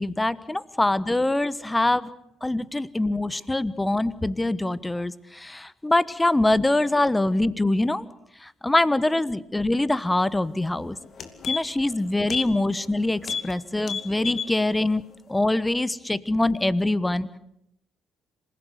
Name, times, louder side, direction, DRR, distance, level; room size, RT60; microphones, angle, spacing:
voice 1, 0.0-2.1 2.4-8.0 8.4-11.0 11.5-15.0 15.3-17.4, left 2 dB, 15° left, 18 dB, 1.2 m, -24 dB
sound 1, 10.6-10.7 11.0-11.9 12.3-12.5 12.8-12.9 13.2-13.5 13.8-14.5 14.9-15.0, left 6 dB, 50° left, 2.6 m, -31 dB
27.0 x 16.5 x 8.1 m, 0.77 s
hypercardioid pair, 50°, 0 cm